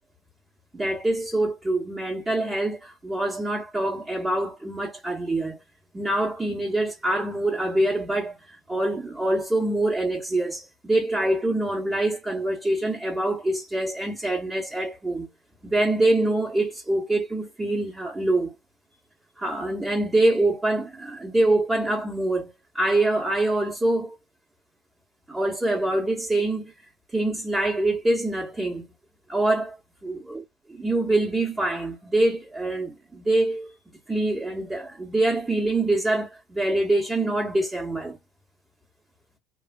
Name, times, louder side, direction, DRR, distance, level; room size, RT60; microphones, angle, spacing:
voice 1, 0.7-5.6 5.9-15.3 15.6-18.6 19.4-24.1 25.3-26.7 27.1-28.9 29.3-29.8 30.0-30.4 30.7-33.7 34.1-38.2, right 2 dB, 15° right, 0.9 m, -25 dB
3.1 x 2.4 x 2.3 m
cardioid pair, 125°, 0 cm